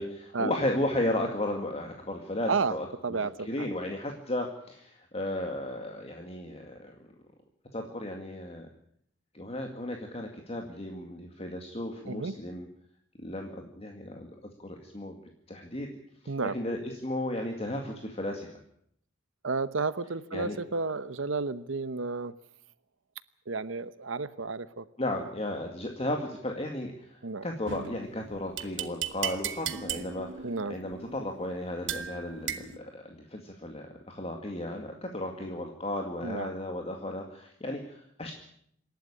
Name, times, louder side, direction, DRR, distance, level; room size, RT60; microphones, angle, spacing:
voice 1, 0.0-7.0 7.7-8.7 9.3-12.7 13.2-14.3 14.6-15.2 15.5-16.0 16.5-18.5 20.3-20.6 25.0-38.3, left 1 dB, 30° left, 2 dB, 2.1 m, -34 dB
voice 2, 3.0-3.7 12.1-12.3 16.3-16.6 19.4-22.3 23.5-24.9 25.1-25.2 27.2-27.5 30.4-30.8 36.2-36.5, right 4 dB, 85° right, 15 dB, 0.9 m, -32 dB
sound 1, 27.7-32.8, right 9 dB, 70° right, 1.2 m, -37 dB
27.0 x 12.0 x 9.9 m, 0.68 s
head